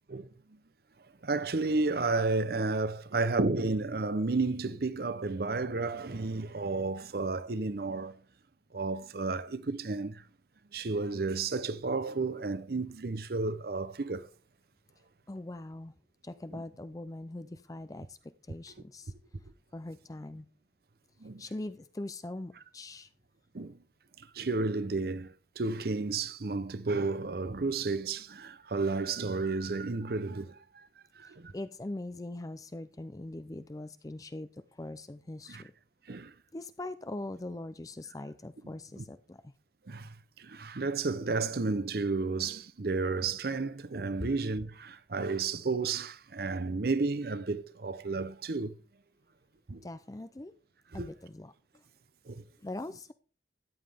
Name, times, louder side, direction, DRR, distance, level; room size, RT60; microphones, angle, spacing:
voice 1, 1.2-8.2 8.7-10.2 10.7-14.3 16.5-16.6 21.2-21.4 23.5-23.8 24.2-30.9 31.2-31.5 35.5-35.6 36.1-36.3 39.0-39.1 39.9-48.7 49.7-49.9 50.9-51.1 52.3-52.4, right 3 dB, 55° right, 0.7 m, -32 dB
voice 2, 15.3-15.9 16.2-19.1 19.7-20.5 21.4-23.1 31.2-35.7 36.5-39.4 49.8-50.5 50.9-51.8 52.6-53.1, left 2 dB, 20° left, 0.4 m, -42 dB
13.5 x 9.7 x 3.5 m
head